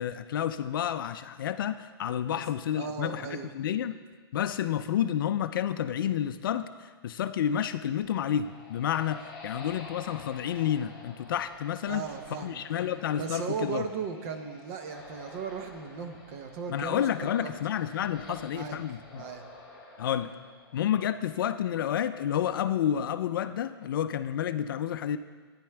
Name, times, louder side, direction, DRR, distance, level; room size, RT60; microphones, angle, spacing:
voice 1, 0.0-4.0 4.3-12.1 12.4-13.9 16.7-19.3 20.0-20.3 20.7-25.2, left 10 dB, 55° left, 11 dB, 0.4 m, -30 dB
voice 2, 2.7-3.5 11.9-12.9 13.2-17.5 18.3-19.5, right 6 dB, 35° right, 7 dB, 0.7 m, -37 dB
sound 1, 8.0-21.4, left 3 dB, ahead, 3.3 m, -50 dB
12.0 x 9.6 x 3.4 m, 1.5 s
hypercardioid pair, 165°, 13 cm